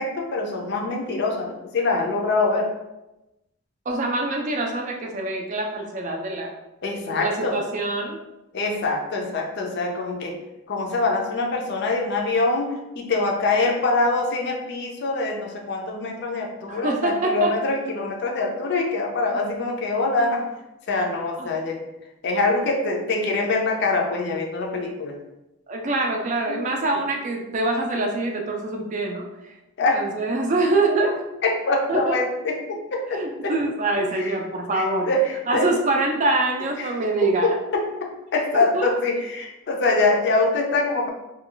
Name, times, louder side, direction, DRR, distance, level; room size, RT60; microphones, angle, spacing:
voice 1, 0.0-2.7 6.8-7.6 8.5-10.4 10.7-20.5 20.9-21.8 22.2-25.2 26.5-26.6 29.8-30.0 31.4-33.5 34.1-34.3 34.7-35.7 36.8-41.1, left 3 dB, 50° left, 1 dB, 0.4 m, -24 dB
voice 2, 3.9-6.5 7.2-8.2 16.7-17.5 21.4-21.5 25.7-29.2 29.9-31.3 31.9-32.2 33.2-35.1 35.5-37.5 38.5-38.9, right 2 dB, 35° right, 2 dB, 0.4 m, -24 dB
2.3 x 2.3 x 3.7 m, 0.95 s
head